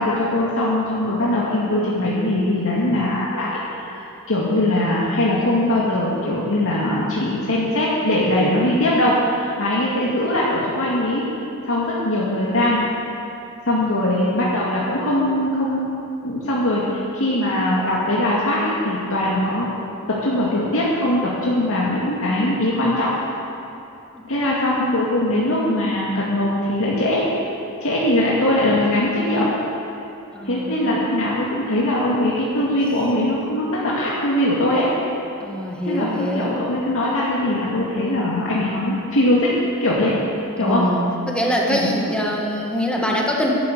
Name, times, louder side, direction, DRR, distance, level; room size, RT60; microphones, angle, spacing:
voice 1, 0.0-3.5 3.8-11.2 11.6-12.8 13.6-15.9 16.2-19.7 20.1-23.1 24.3-27.2 27.8-29.5 30.4-34.9 35.8-39.5 39.8-40.2 40.6-40.9 41.7-41.9, left 1 dB, 65° left, -6 dB, 2.3 m, -21 dB
voice 2, 13.9-14.2 24.1-24.2 30.3-31.0 35.4-36.6 40.6-43.5, equal, 5° left, -2 dB, 1.9 m, -24 dB
12.0 x 11.5 x 8.1 m, 2.8 s
head